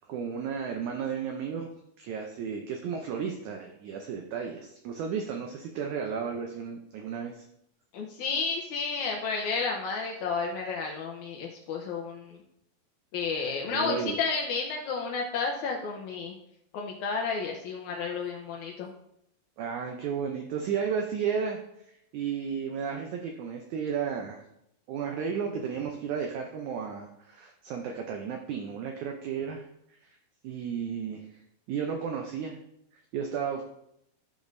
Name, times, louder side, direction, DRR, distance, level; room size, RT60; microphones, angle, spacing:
voice 1, 0.1-1.7 2.0-7.4 13.7-14.2 19.6-21.6 22.1-24.4 24.9-29.6 30.4-31.3 31.7-32.6 33.1-33.6, right 6 dB, 80° right, 3 dB, 1.7 m, -33 dB
voice 2, 7.9-12.4 13.1-16.4 16.7-18.9, left 5 dB, 85° left, 1 dB, 1.7 m, -31 dB
13.5 x 5.1 x 2.6 m, 0.77 s
omnidirectional pair, 4.2 m